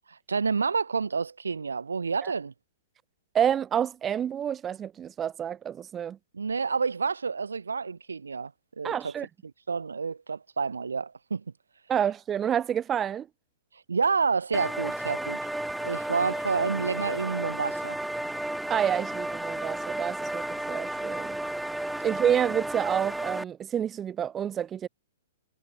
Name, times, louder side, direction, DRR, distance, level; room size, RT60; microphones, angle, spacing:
voice 1, 0.1-2.5 6.3-8.5 8.8-9.1 9.7-11.4 13.9-15.4 15.8-18.0, right 5 dB, 85° right, 1.0 m, -29 dB
voice 2, 3.3-6.2 8.8-9.3 11.9-13.3 18.7-21.4 22.0-24.9, right 9 dB, 20° right, 3.7 m, -28 dB
sound 1, 14.5-23.4, right 1 dB, 5° right, 0.7 m, -33 dB
hypercardioid pair, 120°, 0 cm